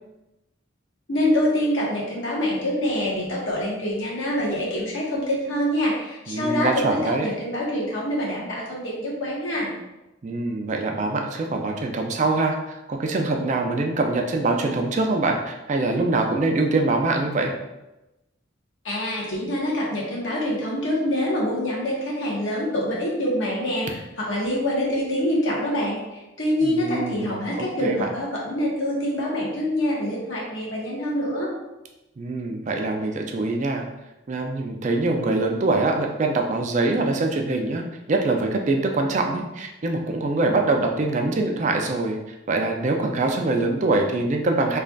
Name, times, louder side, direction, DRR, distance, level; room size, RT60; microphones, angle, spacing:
voice 1, 1.1-9.7 18.8-31.5, equal, 75° left, -4 dB, 1.1 m, -25 dB
voice 2, 6.3-7.3 10.2-17.5 26.6-28.1 32.2-33.8 34.3-37.8 38.1-44.8, right 2 dB, 35° right, 2 dB, 0.4 m, -24 dB
3.2 x 2.4 x 3.8 m, 0.98 s
head